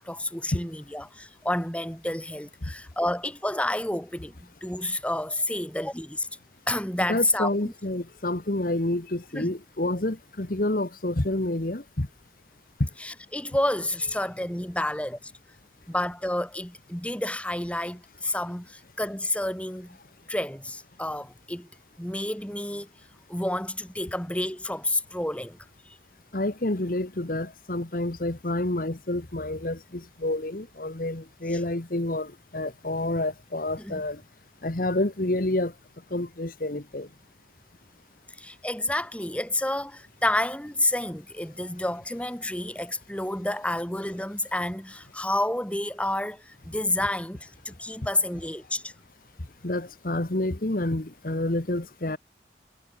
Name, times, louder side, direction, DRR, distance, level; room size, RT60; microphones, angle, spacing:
voice 1, 0.0-6.3 6.7-7.7 9.3-9.5 13.0-15.3 15.9-20.0 20.3-21.7 22.0-22.9 23.3-25.6 25.9-26.0 33.8-33.9 38.4-48.9, left 1 dB, 5° left, 4.4 m, -30 dB
voice 2, 7.1-12.1 12.8-12.9 26.3-34.2 34.6-35.7 36.1-37.1 49.6-52.2, left 1 dB, 50° left, 1.4 m, -28 dB
head